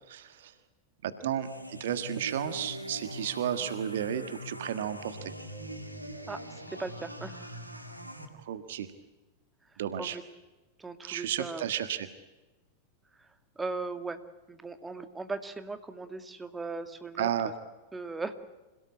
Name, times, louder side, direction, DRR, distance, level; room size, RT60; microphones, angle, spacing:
voice 1, 0.1-0.5 1.0-5.3 8.3-8.9 9.8-10.2 11.0-12.1 17.2-17.5, right 10 dB, 60° right, 11 dB, 1.5 m, -33 dB
sound 1, 1.4-8.2, equal, 85° right, 2.4 m, -42 dB
voice 2, 6.2-7.6 9.6-10.2 10.8-11.7 13.1-14.2 14.5-17.5 17.9-18.3, right 3 dB, 10° right, 9 dB, 2.1 m, -39 dB
27.0 x 17.5 x 8.4 m, 1.2 s
figure-of-eight pair, 90°, 0 cm